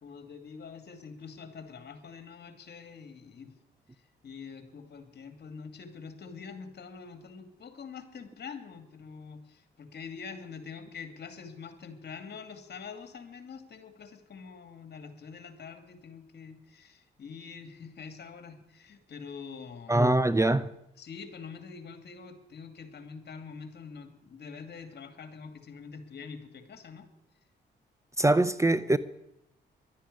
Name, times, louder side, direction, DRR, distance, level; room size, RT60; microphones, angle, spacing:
voice 1, 0.0-3.5 4.2-20.2 21.0-27.1, left 5 dB, 55° left, 2.5 m, -45 dB
voice 2, 19.9-20.7 28.2-29.0, right 2 dB, 15° right, 0.7 m, -23 dB
12.0 x 10.0 x 9.8 m
supercardioid pair, 60°, 20 cm